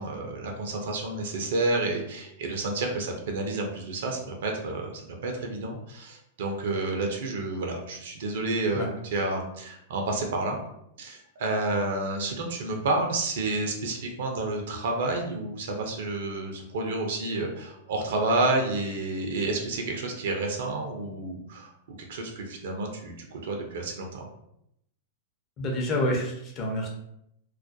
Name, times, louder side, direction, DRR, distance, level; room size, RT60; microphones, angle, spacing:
voice 1, 0.0-10.6 11.0-21.7 22.1-24.3, right 2 dB, 60° right, 2 dB, 0.4 m, -30 dB
voice 2, 25.6-26.9, left 1 dB, 35° left, 0 dB, 0.7 m, -28 dB
2.3 x 2.1 x 2.6 m, 0.78 s
figure-of-eight pair, 100°, 0 cm